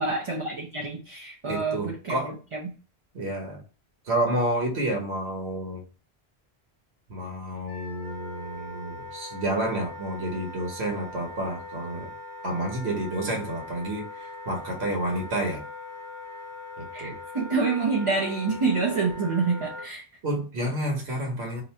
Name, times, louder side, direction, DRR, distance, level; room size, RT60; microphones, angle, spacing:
voice 1, 0.0-2.7 16.9-20.0, right 4 dB, 35° right, -1 dB, 0.6 m, -27 dB
voice 2, 1.5-2.3 3.1-3.6 4.0-5.8 7.1-12.1 12.4-15.6 16.8-17.2 20.2-21.6, right 1 dB, 90° right, 0 dB, 1.2 m, -30 dB
Wind instrument woodwind instrument, 7.7-19.9, left 2 dB, 5° right, 0.9 m, -41 dB
3.0 x 2.5 x 4.2 m, 0.36 s
omnidirectional pair, 1.1 m